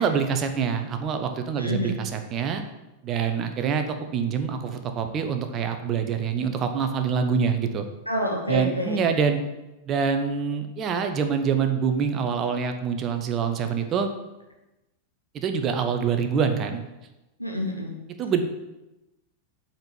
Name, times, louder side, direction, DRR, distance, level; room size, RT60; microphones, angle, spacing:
voice 1, 0.0-2.6 3.0-7.8 8.5-9.4 9.9-14.1 15.3-16.8 18.2-18.4, right 6 dB, 30° right, 7 dB, 1.0 m, -25 dB
voice 2, 1.6-2.0 8.1-9.0 17.4-18.0, left 1 dB, 90° left, 0 dB, 1.6 m, -28 dB
7.9 x 4.5 x 7.1 m, 0.99 s
figure-of-eight pair, 90°, 0 cm